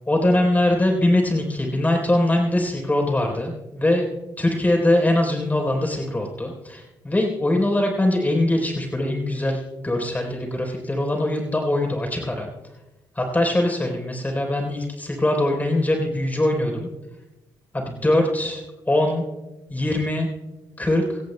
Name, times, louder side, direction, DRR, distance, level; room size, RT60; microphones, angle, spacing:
voice 1, 0.1-4.1 4.4-12.5 13.2-16.9 17.7-19.2 19.7-20.3 20.8-21.2, left 1 dB, 15° left, 2 dB, 3.7 m, -22 dB
23.5 x 17.0 x 2.2 m, 1.0 s
hypercardioid pair, 45°, 10 cm